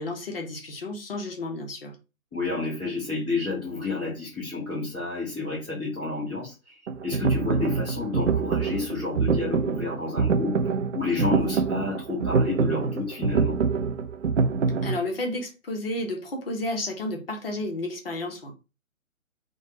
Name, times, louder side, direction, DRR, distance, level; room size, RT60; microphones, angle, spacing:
voice 1, 0.0-2.0 14.8-18.5, left 2 dB, 45° left, 0.7 m, -32 dB
voice 2, 2.3-6.8 7.0-10.5 10.9-13.6, left 3 dB, 5° left, 0.5 m, -30 dB
sound 1, 6.9-15.0, right 5 dB, 60° right, 0.5 m, -25 dB
3.2 x 2.2 x 2.9 m
figure-of-eight pair, 135°, 42 cm